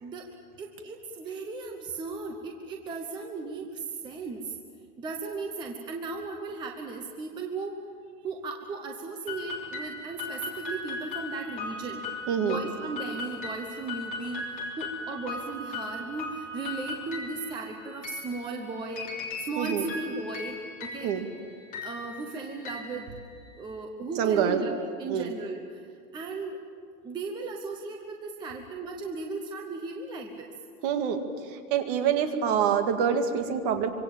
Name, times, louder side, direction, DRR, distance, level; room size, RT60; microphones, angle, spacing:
voice 1, 0.6-4.5 5.0-7.8 8.2-12.0 12.4-14.4 14.8-19.1 19.5-21.1 21.8-23.1 23.6-25.8 26.1-26.6 27.0-30.5, right 3 dB, 10° right, 2 dB, 0.9 m, -36 dB
sound 1, 9.3-23.7, left 3 dB, 20° left, 3.5 m, -38 dB
voice 2, 12.3-12.6 19.6-19.8 21.0-21.2 24.2-24.6 25.1-25.3 30.8-31.2 31.7-33.9, right 8 dB, 35° right, 6 dB, 2.1 m, -26 dB
25.5 x 25.5 x 7.3 m, 2.2 s
supercardioid pair, 175°, 45 cm